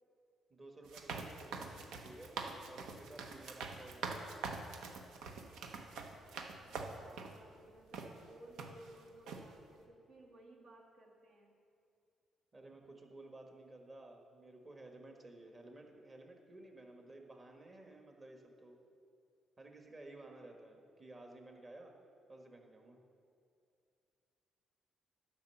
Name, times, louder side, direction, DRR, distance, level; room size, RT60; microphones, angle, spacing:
voice 1, 0.5-1.7 2.0-2.4 2.6-4.3 12.5-18.8 19.6-21.9 22.3-23.0, right 2 dB, 30° right, 2 dB, 1.5 m, -54 dB
sound 1, 0.8-7.4 7.9-8.1 8.6-9.0 9.3-9.4, right 4 dB, 85° right, 0.9 m, -45 dB
voice 2, 6.6-11.6, right 1 dB, 70° right, -1 dB, 2.0 m, -58 dB
10.5 x 5.5 x 7.0 m, 2.5 s
cardioid pair, 90°, 0 cm